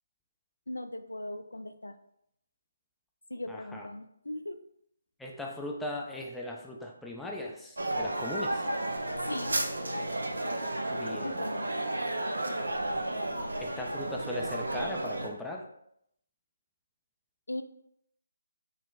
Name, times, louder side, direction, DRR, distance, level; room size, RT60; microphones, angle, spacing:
voice 1, 0.7-2.0 3.3-4.6 9.2-9.6 11.1-11.7 17.5-17.6, left 1 dB, 90° left, 10 dB, 0.3 m, -39 dB
voice 2, 3.5-3.9 5.2-8.7 10.9-11.4 13.6-15.6, left 1 dB, 5° left, -1 dB, 0.4 m, -38 dB
sound 1, 7.8-15.3, right 1 dB, 85° right, 0.6 m, -32 dB
3.9 x 2.1 x 3.8 m, 0.74 s
figure-of-eight pair, 155°, 0 cm